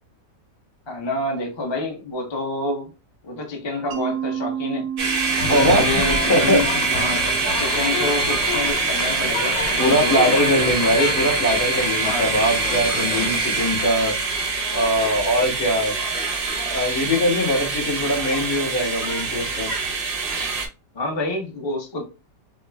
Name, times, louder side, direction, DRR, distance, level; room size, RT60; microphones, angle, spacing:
voice 1, 0.9-2.9 3.2-4.9 5.5-7.2 7.6-10.7 12.0-12.3 20.9-22.0, left 2 dB, 30° left, 1 dB, 0.5 m, -28 dB
Mallet percussion, 3.9-8.7, right 8 dB, 90° right, 1.2 m, -32 dB
sound 1, 5.0-20.7, right 4 dB, 55° right, 0.6 m, -24 dB
sound 2, 5.4-13.9, left 5 dB, 90° left, 1.3 m, -30 dB
voice 2, 5.5-6.0 6.3-6.8 9.8-14.1 14.7-15.9 16.7-19.7, equal, 70° left, -4 dB, 2.7 m, -21 dB
4.8 x 2.2 x 2.2 m, 0.30 s
omnidirectional pair, 1.9 m